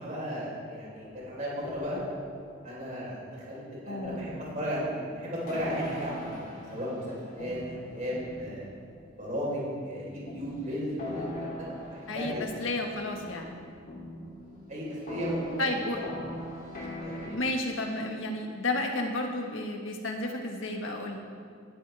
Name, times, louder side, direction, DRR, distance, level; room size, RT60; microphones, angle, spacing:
voice 1, 0.0-2.0 2.6-8.6 9.2-12.4 14.7-16.1 17.0-17.4, equal, 35° right, -5 dB, 4.3 m, -35 dB
sound 1, 0.9-3.4 4.0-9.5 10.3-17.3, left 1 dB, 45° left, 3.0 m, -42 dB
voice 2, 3.9-4.2 12.1-13.5 15.6-16.1 17.2-21.2, left 2 dB, 65° left, 2 dB, 1.6 m, -32 dB
18.0 x 12.5 x 3.5 m, 2.1 s
head